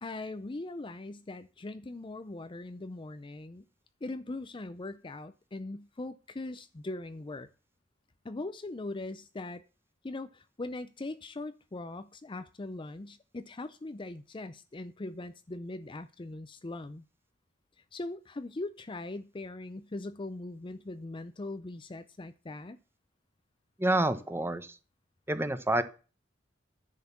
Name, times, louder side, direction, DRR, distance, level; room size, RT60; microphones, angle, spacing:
voice 1, 0.0-3.6 4.0-7.5 8.2-9.6 10.0-17.1 17.9-22.8, left 2 dB, 25° left, 0.5 m, -40 dB
voice 2, 23.8-24.8 25.3-25.8, right 1 dB, 10° right, 1.0 m, -28 dB
10.5 x 6.5 x 7.2 m
head